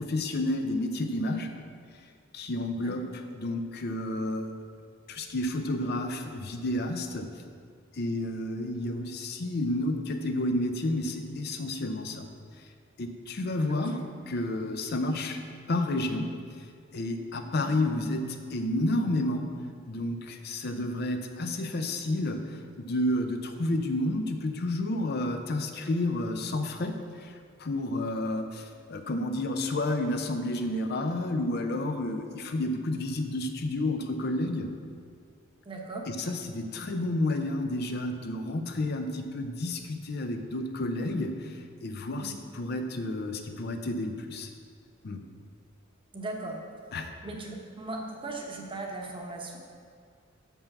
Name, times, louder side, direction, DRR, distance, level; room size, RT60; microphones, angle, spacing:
voice 1, 0.0-1.5 2.3-3.0 3.4-4.5 5.1-7.3 7.9-12.3 13.0-14.0 14.3-15.4 15.7-16.3 16.9-19.4 19.9-34.7 36.1-44.5 45.0-45.2 46.9-47.1, left 1 dB, 55° left, 6 dB, 0.5 m, -30 dB
voice 2, 13.7-14.0 35.6-36.0 42.2-42.4 46.1-46.6 47.2-49.6, right 2 dB, 25° right, 0 dB, 0.9 m, -38 dB
6.9 x 5.5 x 5.9 m, 2.1 s
head